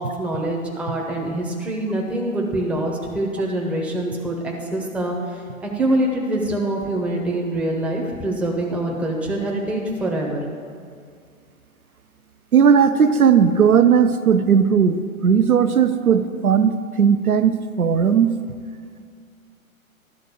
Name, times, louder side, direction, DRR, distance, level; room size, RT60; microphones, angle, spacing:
voice 1, 0.0-10.4, right 1 dB, 5° right, -2 dB, 0.7 m, -25 dB
voice 2, 12.5-18.3, right 7 dB, 85° right, 9 dB, 0.6 m, -17 dB
12.0 x 4.0 x 6.7 m, 2.2 s
figure-of-eight pair, 115°, 42 cm